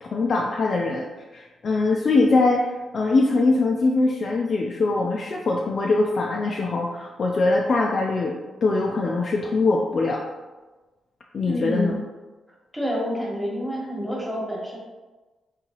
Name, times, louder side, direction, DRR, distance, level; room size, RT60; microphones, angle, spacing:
voice 1, 0.0-1.1 1.3-10.2 11.3-11.9, left 3 dB, 50° left, -1 dB, 0.4 m, -22 dB
voice 2, 11.4-12.0 12.7-14.8, equal, ahead, -4 dB, 1.2 m, -28 dB
3.8 x 2.8 x 2.9 m, 1.2 s
cardioid pair, 90°, 0 cm